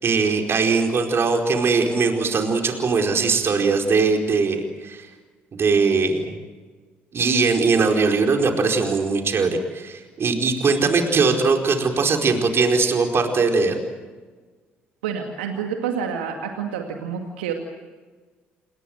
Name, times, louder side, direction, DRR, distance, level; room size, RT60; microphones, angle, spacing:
voice 1, 0.0-5.1 5.5-6.4 7.1-13.8, right 4 dB, 45° right, 3 dB, 4.7 m, -20 dB
voice 2, 15.0-17.5, right 7 dB, 80° right, 3 dB, 2.2 m, -28 dB
28.5 x 20.5 x 8.0 m, 1.4 s
hypercardioid pair, 50°, 6 cm